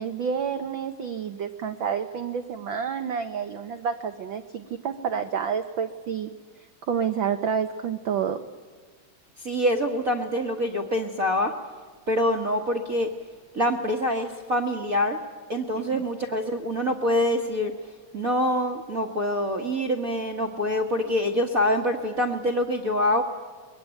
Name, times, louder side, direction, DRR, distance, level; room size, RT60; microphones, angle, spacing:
voice 1, 0.0-6.3 6.9-8.4 15.9-16.0, right 7 dB, 80° right, 8 dB, 1.0 m, -29 dB
voice 2, 9.4-11.5 12.1-13.1 13.5-15.2 15.5-17.7 18.1-23.2, left 1 dB, 45° right, 0 dB, 1.2 m, -25 dB
23.0 x 21.5 x 9.1 m, 1.5 s
omnidirectional pair, 3.3 m